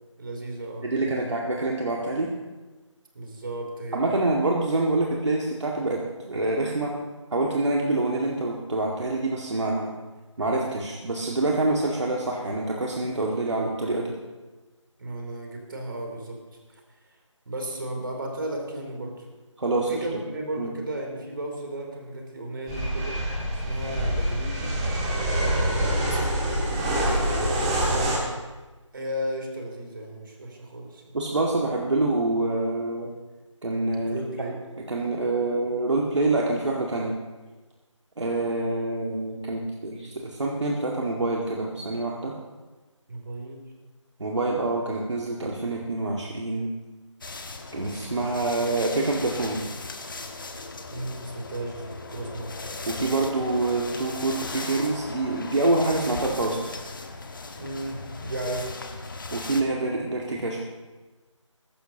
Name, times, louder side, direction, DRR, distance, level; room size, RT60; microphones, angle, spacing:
voice 1, 0.2-1.3 3.1-4.1 15.0-16.4 16.7-16.8 17.4-19.3 19.7-23.2 23.6-24.8 25.7-26.2 27.0-28.1 28.9-31.2 34.1-34.6 43.1-43.6 50.9-52.6 57.6-58.7, right 1 dB, 40° right, 1 dB, 3.3 m, -34 dB
voice 2, 0.8-2.3 3.9-6.9 7.3-9.9 10.4-14.1 19.6-20.0 20.6-20.7 31.1-33.1 33.6-34.2 34.9-37.2 38.2-42.3 44.2-46.7 47.7-49.6 52.9-56.6 59.3-60.6, right 2 dB, 60° right, -2 dB, 2.0 m, -26 dB
sound 1, 22.7-28.2, right 1 dB, 10° right, 1.6 m, -25 dB
sound 2, 47.2-59.6, left 3 dB, 40° left, 1.3 m, -38 dB
21.5 x 11.5 x 2.9 m, 1.2 s
figure-of-eight pair, 165°, 17 cm